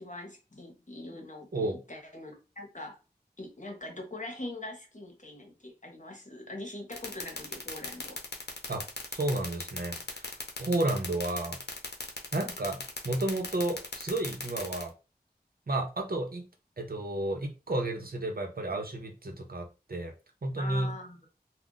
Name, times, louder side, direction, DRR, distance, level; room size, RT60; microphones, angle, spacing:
voice 1, 0.0-3.0 3.4-8.2 20.6-21.3, left 1 dB, 45° left, 2 dB, 0.9 m, -42 dB
sound 1, 6.9-14.8, left 3 dB, 85° left, 0.7 m, -36 dB
voice 2, 9.1-10.3 10.6-11.6 12.3-14.9 15.7-16.4 16.8-20.1 20.4-20.9, right 2 dB, 60° right, 3 dB, 0.7 m, -32 dB
2.4 x 2.2 x 3.8 m, 0.30 s
wide cardioid pair, 40°, 17 cm